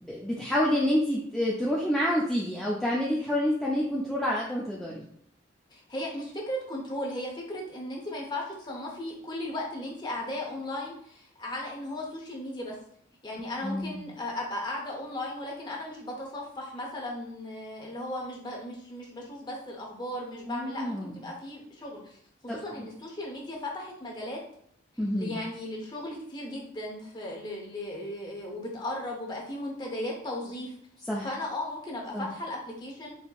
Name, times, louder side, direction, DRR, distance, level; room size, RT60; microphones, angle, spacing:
voice 1, 0.0-5.1 13.6-14.0 20.5-21.2 22.5-22.9 25.0-25.4 31.1-31.3 32.1-32.3, equal, ahead, -5 dB, 0.4 m, -28 dB
voice 2, 5.7-12.8 13.2-22.2 22.4-24.4 25.1-30.7 31.2-33.2, left 1 dB, 25° left, -2 dB, 0.7 m, -36 dB
4.2 x 2.8 x 2.3 m, 0.66 s
head